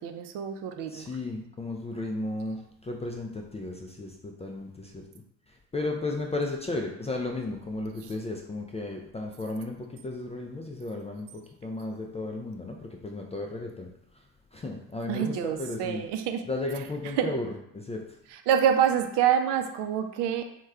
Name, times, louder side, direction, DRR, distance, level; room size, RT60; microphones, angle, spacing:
voice 1, 0.0-1.0 15.1-16.4 17.2-17.3 18.3-20.4, right 9 dB, 65° right, 6 dB, 0.5 m, -26 dB
voice 2, 0.9-2.6 2.9-4.9 5.7-12.8 13.0-13.9 14.5-16.0 16.5-18.1, left 2 dB, 15° left, 1 dB, 0.3 m, -34 dB
3.1 x 2.3 x 3.5 m, 0.77 s
hypercardioid pair, 60°, 45 cm